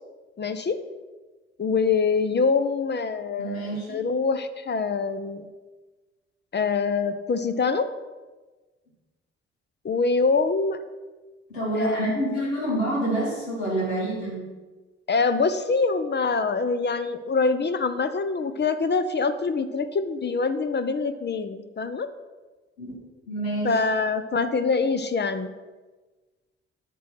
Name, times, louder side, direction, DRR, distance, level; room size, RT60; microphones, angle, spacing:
voice 1, 0.4-0.8 1.6-5.4 6.5-7.9 9.8-10.8 11.8-12.4 15.1-22.1 23.6-25.5, left 4 dB, 30° left, 11 dB, 0.9 m, -25 dB
voice 2, 3.4-4.2 11.5-14.5 22.8-23.0 23.3-23.8, right 1 dB, 80° left, -3 dB, 2.4 m, -28 dB
9.2 x 6.3 x 5.9 m, 1.3 s
figure-of-eight pair, 40°, 32 cm